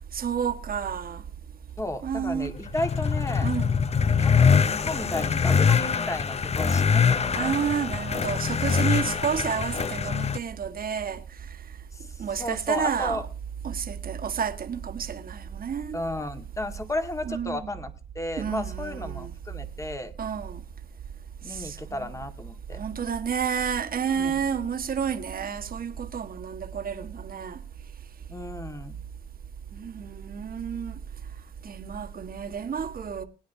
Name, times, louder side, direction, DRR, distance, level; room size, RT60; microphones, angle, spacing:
voice 1, 0.1-1.2 2.0-2.5 3.4-3.7 7.3-11.2 12.2-13.2 13.6-16.0 17.2-17.8 18.4-19.3 20.2-20.6 21.5-22.2 22.8-27.6 29.7-30.9 31.6-33.2, right 7 dB, 45° right, 1.5 m, -30 dB
voice 2, 1.8-3.5 4.2-7.7 11.9-13.2 15.9-17.9 18.2-20.1 21.4-22.8 24.2-24.4 28.3-29.0, left 1 dB, 15° left, 1.8 m, -33 dB
sound 1, 2.6-10.4, left 6 dB, 30° left, 0.6 m, -23 dB
21.0 x 9.6 x 2.8 m
cardioid pair, 90°, 20 cm